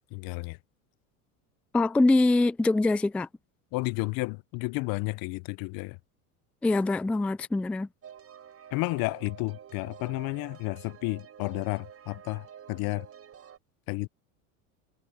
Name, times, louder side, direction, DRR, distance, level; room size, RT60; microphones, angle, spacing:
voice 1, 0.1-0.6 3.7-6.0 8.7-13.1 13.9-14.1, left 25 dB, 55° left, 0.8 m, -32 dB
voice 2, 1.7-3.3 6.6-7.9, left 2 dB, 5° left, 0.3 m, -24 dB
sound 1, 8.0-13.6, right 9 dB, 35° right, 4.8 m, -49 dB
supercardioid pair, 100°, 42 cm